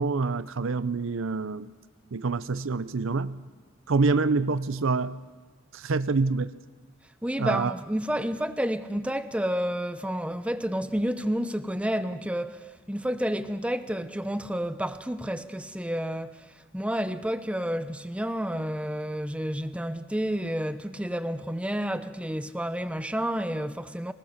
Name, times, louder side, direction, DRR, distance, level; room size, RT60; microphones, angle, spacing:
voice 1, 0.0-1.7 2.1-3.5 3.9-5.2 5.7-6.5 7.4-7.7, right 4 dB, 75° right, 0.6 m, -26 dB
voice 2, 7.2-16.5 16.7-24.1, equal, 5° right, 0.7 m, -30 dB
25.0 x 19.5 x 6.6 m
head